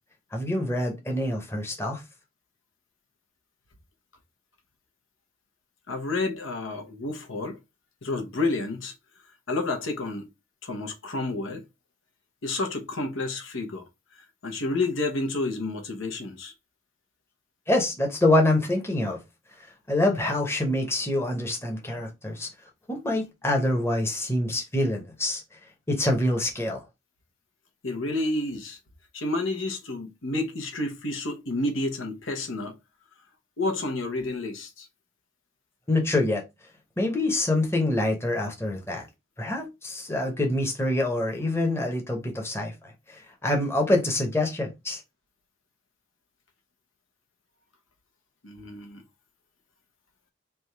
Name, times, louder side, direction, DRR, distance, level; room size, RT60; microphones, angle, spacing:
voice 1, 0.3-2.0 17.7-19.2 19.9-22.5 22.9-25.4 25.9-26.8 35.9-36.4 37.0-39.1 39.4-42.7 43.1-45.0, left 1 dB, 15° left, 0.8 m, -25 dB
voice 2, 5.9-7.6 8.0-8.9 9.5-10.3 10.6-11.6 12.4-13.9 14.4-16.5 27.8-28.8 29.1-32.7 33.6-34.9 48.4-49.0, left 2 dB, 90° left, 1.1 m, -30 dB
3.4 x 2.6 x 4.4 m
head